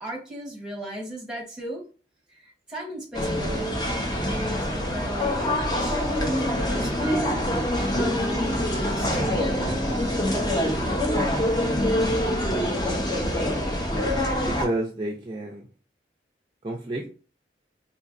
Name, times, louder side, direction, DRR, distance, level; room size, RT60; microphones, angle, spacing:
voice 1, 0.0-1.8 2.3-7.3 7.8-8.6 8.9-10.0, right 1 dB, 5° right, -1 dB, 1.0 m, -35 dB
sound 1, 3.1-14.7, left 1 dB, 25° left, 0.7 m, -25 dB
voice 2, 14.4-15.7 16.6-17.1, right 1 dB, 25° right, -1 dB, 0.4 m, -30 dB
4.2 x 2.7 x 2.5 m, 0.36 s
head